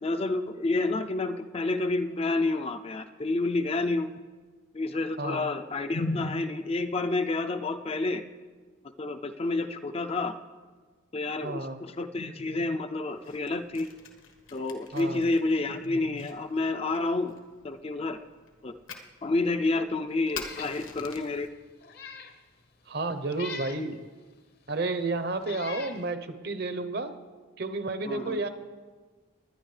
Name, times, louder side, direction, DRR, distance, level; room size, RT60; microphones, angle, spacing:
voice 1, 0.0-4.1 4.7-8.2 9.0-10.3 11.1-13.9 14.5-17.3 17.6-18.2 18.6-18.7 19.2-21.5 28.1-28.4, left 2 dB, 30° left, 9 dB, 0.4 m, -29 dB
voice 2, 5.2-5.5 11.4-11.8 14.9-15.2 22.9-24.0 24.7-27.1 27.6-28.5, right 2 dB, 50° right, 8 dB, 0.8 m, -31 dB
Fire, 13.1-21.5, left 5 dB, 75° left, 1.3 m, -47 dB
Meow, 20.3-20.8 21.2-21.3 21.8-22.4 23.3-23.8 24.7-24.8 25.4-26.0, left 5 dB, 50° left, 0.8 m, -42 dB
20.0 x 10.5 x 3.3 m, 1.4 s
head